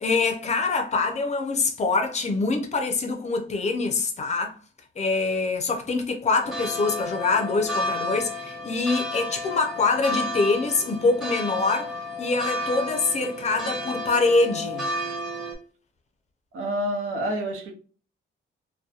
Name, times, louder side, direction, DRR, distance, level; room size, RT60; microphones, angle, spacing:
voice 1, 0.0-4.6 5.0-14.9, left 3 dB, 35° left, 0.5 m, -24 dB
sound 1, 6.4-15.5, left 1 dB, ahead, 0.8 m, -32 dB
voice 2, 16.5-17.7, right 1 dB, 85° right, 0.8 m, -28 dB
2.7 x 2.1 x 2.3 m
wide cardioid pair, 165°, 21 cm